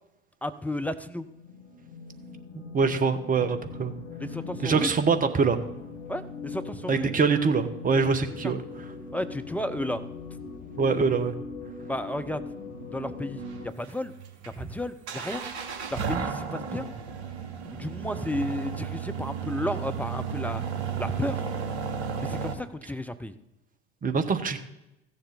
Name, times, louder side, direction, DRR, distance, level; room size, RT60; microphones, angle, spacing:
voice 1, 0.4-1.3 4.2-4.9 6.1-7.1 8.4-8.5 9.1-10.0 11.9-12.4 12.9-13.4 13.8-14.1 14.6-15.4 15.9-16.9 17.7-20.6 21.0-21.4 22.2-23.3, left 1 dB, 5° left, 8 dB, 0.6 m, -32 dB
sound 1, 1.2-13.7, left 3 dB, 70° left, 1.5 m, -40 dB
voice 2, 2.7-3.9 4.6-5.6 6.9-8.6 10.8-11.3 24.0-24.6, right 5 dB, 25° right, 9 dB, 1.1 m, -24 dB
sound 2, 13.4-22.5, right 7 dB, 65° right, 1.4 m, -33 dB
15.5 x 7.1 x 4.0 m, 0.90 s
figure-of-eight pair, 70°, 35 cm